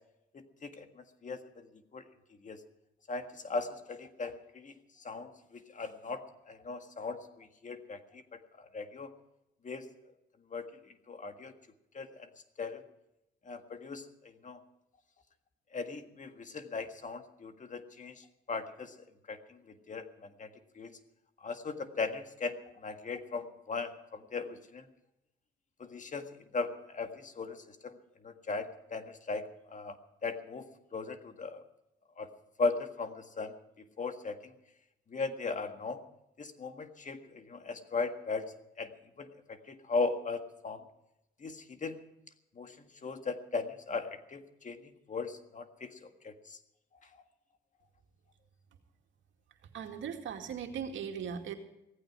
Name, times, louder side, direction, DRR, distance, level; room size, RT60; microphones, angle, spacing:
voice 1, 0.3-1.7 1.9-2.0 2.4-2.6 3.1-9.1 9.6-9.9 10.5-10.7 11.1-11.5 11.9-12.3 12.6-12.8 13.5-14.6 15.7-18.9 19.3-20.5 20.8-20.9 21.4-24.9 25.8-26.3 26.5-28.0 28.2-30.0 30.2-31.6 32.2-32.3 32.6-33.5 34.0-34.5 35.1-36.0 36.4-38.9 39.2-40.8 41.4-42.0 42.6-46.6, left 4 dB, 40° left, 7 dB, 1.7 m, -38 dB
voice 2, 49.7-51.5, right 7 dB, 70° right, 4 dB, 2.3 m, -38 dB
17.0 x 15.0 x 4.8 m, 0.86 s
cardioid pair, 90°, 20 cm